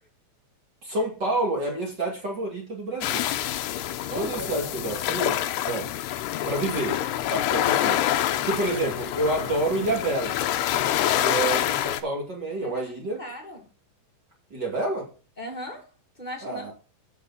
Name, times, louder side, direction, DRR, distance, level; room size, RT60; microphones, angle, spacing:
voice 1, 0.8-3.2 4.0-5.4 5.7-5.9 6.5-7.0 7.3-8.0 8.4-10.4 11.1-13.2 14.5-15.1 16.4-16.7, right 2 dB, 30° right, -1 dB, 2.0 m, -28 dB
sound 1, 3.0-12.0, left 12 dB, 80° left, 2.4 m, -26 dB
voice 2, 4.1-4.7 6.3-6.6 8.3-8.6 12.6-13.7 15.4-15.9 16.2-16.6, left 1 dB, 20° left, -1 dB, 1.3 m, -38 dB
15.5 x 5.7 x 4.2 m, 0.35 s
omnidirectional pair, 5.7 m